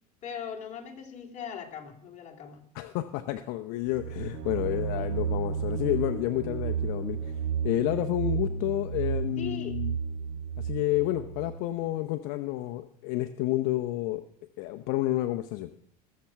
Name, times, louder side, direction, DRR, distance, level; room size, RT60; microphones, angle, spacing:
voice 1, 0.2-2.6 9.4-9.8, left 8 dB, 40° left, 1 dB, 2.8 m, -40 dB
voice 2, 2.7-7.4 7.6-10.0 10.6-14.2 14.6-15.7, left 15 dB, 65° left, 9 dB, 0.8 m, -30 dB
sound 1, 3.9-11.6, right 7 dB, 65° right, 2.0 m, -32 dB
20.0 x 7.6 x 5.8 m, 0.64 s
supercardioid pair, 110°, 19 cm